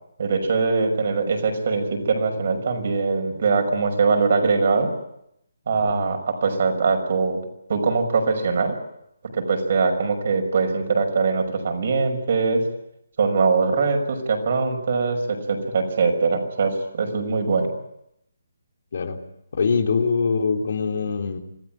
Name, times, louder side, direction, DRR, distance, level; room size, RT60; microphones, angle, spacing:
voice 1, 0.2-4.9 5.7-7.4 7.7-8.8 9.3-12.6 13.2-17.7, right 4 dB, 50° right, 4 dB, 6.1 m, -22 dB
voice 2, 19.5-21.4, left 5 dB, 55° left, 5 dB, 3.3 m, -23 dB
26.5 x 16.0 x 9.2 m, 0.80 s
hypercardioid pair, 165°, 0 cm